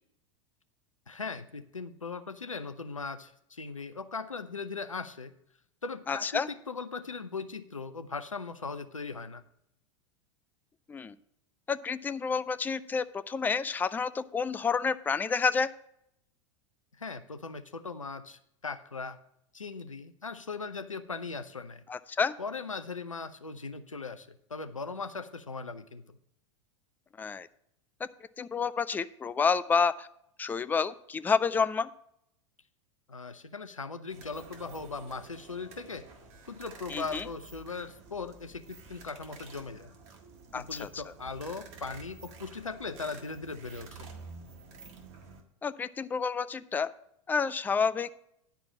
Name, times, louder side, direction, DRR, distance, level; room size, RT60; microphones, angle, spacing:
voice 1, 1.1-5.3 5.8-9.4 17.0-19.2 19.5-21.8 22.4-26.2 33.1-36.1 36.5-39.9 40.5-44.1, left 4 dB, 85° left, 11 dB, 0.6 m, -39 dB
voice 2, 6.1-6.5 10.9-11.1 11.7-15.7 21.9-22.3 27.2-27.5 28.4-30.1 30.4-31.9 36.9-37.2 40.5-40.9 45.6-46.9 47.3-48.1, left 5 dB, 10° left, 14 dB, 0.3 m, -29 dB
sound 1, 34.1-45.4, right 4 dB, 40° right, 1.6 m, -50 dB
10.0 x 4.7 x 7.0 m, 0.75 s
figure-of-eight pair, 85°, 16 cm